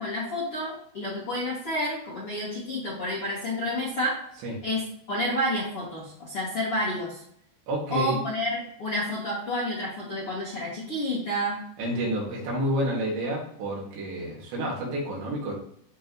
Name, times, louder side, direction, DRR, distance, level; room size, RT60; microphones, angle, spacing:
voice 1, 0.0-4.2 4.6-7.2 7.9-11.6, left 1 dB, 40° left, -7 dB, 2.2 m, -30 dB
voice 2, 7.7-8.2 11.8-15.5, equal, 65° right, -3 dB, 4.3 m, -29 dB
14.0 x 4.8 x 3.1 m, 0.69 s
omnidirectional pair, 5.8 m